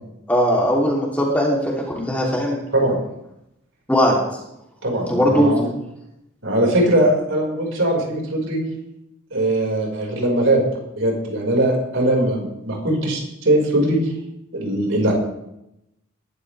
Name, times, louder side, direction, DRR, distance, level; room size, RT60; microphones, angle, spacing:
voice 1, 0.3-2.6 3.9-4.2 5.1-5.5, equal, 5° left, -3 dB, 3.2 m, -19 dB
voice 2, 4.8-5.7 6.4-8.6 9.3-10.6 11.0-14.0 14.5-15.1, right 1 dB, 70° right, -1 dB, 5.4 m, -20 dB
21.0 x 12.5 x 3.5 m, 0.83 s
head